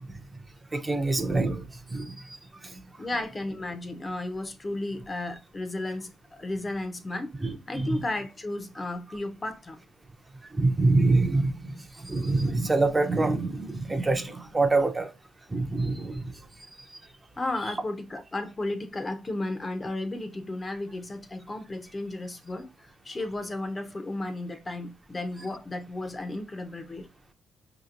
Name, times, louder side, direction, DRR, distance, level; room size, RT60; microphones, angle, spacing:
voice 1, 0.7-1.6 1.9-2.2 7.7-8.0 10.6-11.7 12.0-15.1 15.5-16.2, right 3 dB, 20° right, 0.6 m, -25 dB
voice 2, 3.0-7.3 7.7-9.8 17.4-27.1, left 2 dB, 25° left, 0.6 m, -34 dB
4.9 x 2.9 x 2.5 m
cardioid pair, 90°, 0 cm